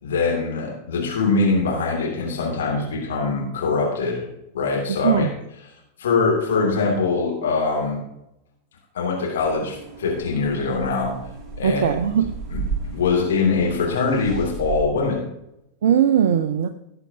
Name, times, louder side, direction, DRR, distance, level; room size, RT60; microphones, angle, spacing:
voice 1, 0.0-4.2 4.5-5.3 6.0-8.0 8.9-11.2 11.6-12.1 12.5-15.3, left 4 dB, 65° left, -2 dB, 2.7 m, -23 dB
sound 1, 9.4-14.8, right 4 dB, 15° right, 2.6 m, -34 dB
voice 2, 11.6-12.3 15.8-16.7, right 9 dB, 60° right, 9 dB, 0.6 m, -19 dB
18.0 x 7.7 x 2.9 m, 0.85 s
figure-of-eight pair, 90°, 0 cm